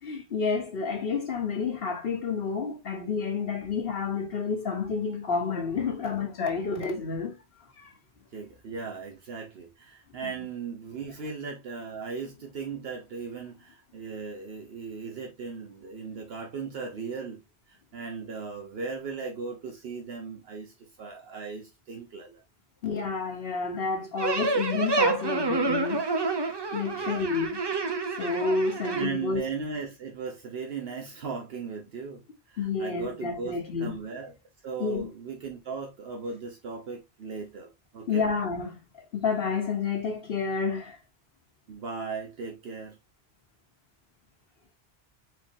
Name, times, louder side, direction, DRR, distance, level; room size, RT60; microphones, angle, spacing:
voice 1, 0.0-7.4 7.8-7.9 10.2-10.3 22.8-26.0 26.7-27.6 28.2-29.5 32.6-34.0 34.8-35.1 38.1-41.0, left 5 dB, 70° left, 1.1 m, -30 dB
voice 2, 8.3-17.4 17.7-22.4 26.9-27.3 28.9-34.3 34.6-38.2 41.7-43.0, right 5 dB, 75° right, 1.1 m, -37 dB
sound 1, 24.2-29.0, right 3 dB, 30° right, 0.6 m, -28 dB
4.5 x 3.7 x 2.6 m
omnidirectional pair, 1.0 m